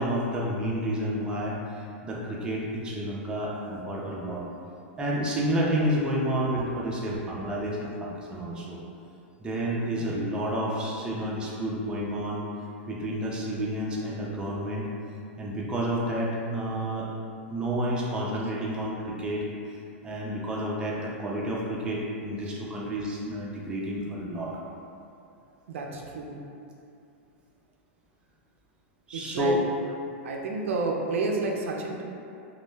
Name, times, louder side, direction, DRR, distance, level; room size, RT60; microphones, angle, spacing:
voice 1, 0.0-4.5 5.0-8.8 9.4-12.4 12.9-14.9 15.4-17.1 17.5-19.5 20.0-24.5 29.1-29.6, equal, 15° right, -4 dB, 0.4 m, -30 dB
voice 2, 25.7-26.4 29.1-29.6 30.2-32.0, right 3 dB, 90° right, 0 dB, 0.3 m, -30 dB
2.1 x 2.0 x 3.2 m, 2.6 s
supercardioid pair, 140°, 7 cm